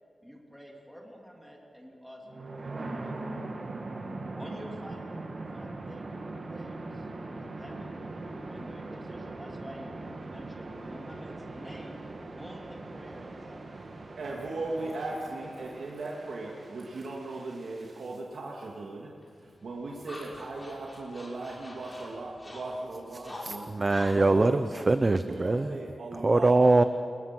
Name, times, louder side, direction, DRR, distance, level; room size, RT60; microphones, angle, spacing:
voice 1, 0.2-3.6 4.4-5.1 5.5-6.2 6.5-7.1 7.3-7.9 8.5-12.0 12.4-13.6 14.8-15.7, equal, ahead, -1 dB, 3.3 m, -48 dB
sound 1, 2.2-18.2, right 2 dB, 45° right, 2.4 m, -41 dB
voice 2, 14.2-23.7 24.1-24.9 25.2-26.7, right 2 dB, 80° right, -2 dB, 2.5 m, -38 dB
sound 2, 19.2-25.7, left 1 dB, 20° left, 6.9 m, -47 dB
voice 3, 23.4-25.7 26.1-26.8, right 2 dB, 30° right, 10 dB, 0.7 m, -23 dB
28.0 x 21.5 x 6.1 m, 2.3 s
wide cardioid pair, 130°, 0 cm